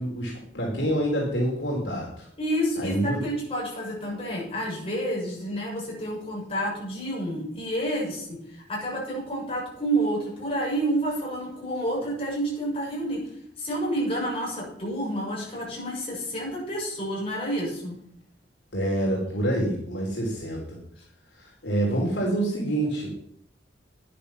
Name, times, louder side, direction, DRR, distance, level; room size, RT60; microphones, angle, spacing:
voice 1, 0.0-2.3 2.8-3.2 18.7-20.8 21.3-23.1, right 1 dB, 70° left, -2 dB, 3.5 m, -27 dB
voice 2, 2.4-13.2 13.6-18.0, right 1 dB, 30° left, -4 dB, 6.9 m, -29 dB
10.5 x 10.0 x 6.1 m, 0.67 s
head